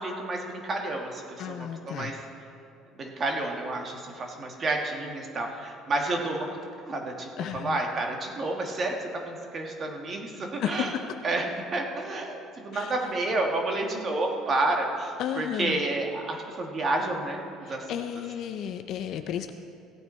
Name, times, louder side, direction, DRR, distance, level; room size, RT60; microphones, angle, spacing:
voice 1, 0.0-2.2 3.0-6.5 6.8-11.0 11.2-11.5 11.7-18.0, right 2 dB, 35° right, 2 dB, 1.6 m, -30 dB
voice 2, 1.4-2.1 7.4-7.8 10.6-11.0 12.7-12.9 15.2-15.8 17.6-19.5, left 9 dB, 55° left, 7 dB, 0.6 m, -33 dB
16.0 x 9.0 x 4.4 m, 2.5 s
cardioid pair, 130°, 0 cm